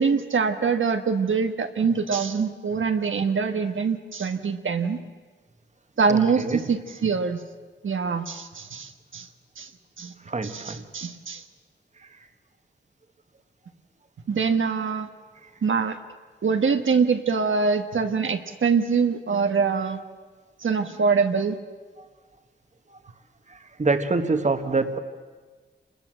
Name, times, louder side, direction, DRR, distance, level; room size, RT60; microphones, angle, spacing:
voice 1, 0.0-5.0 6.0-7.4 7.8-9.3 9.6-9.7 10.0-10.1 10.4-11.4 14.3-15.1 15.6-16.0 16.4-20.0 20.6-21.6, right 5 dB, 80° right, 6 dB, 1.4 m, -24 dB
voice 2, 6.1-6.6 10.3-10.8 23.5-25.0, right 3 dB, 35° right, 8 dB, 1.5 m, -25 dB
27.5 x 21.5 x 7.6 m, 1.4 s
wide cardioid pair, 115°, 20 cm